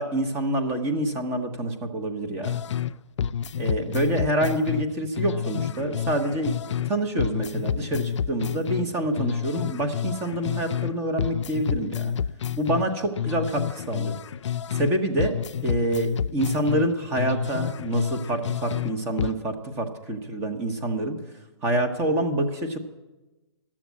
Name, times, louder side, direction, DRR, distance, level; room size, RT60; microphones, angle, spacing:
voice 1, 0.0-2.6 3.5-12.1 12.6-14.1 14.7-21.2 21.6-22.8, right 1 dB, 15° right, 7 dB, 1.0 m, -27 dB
sound 1, 2.4-2.9 3.2-6.9 7.2-10.9 11.2-14.9 15.2-18.9 19.2-19.4, left 8 dB, 75° left, 0.4 m, -29 dB
12.5 x 7.4 x 9.3 m, 1.1 s
hypercardioid pair, 155°, 15 cm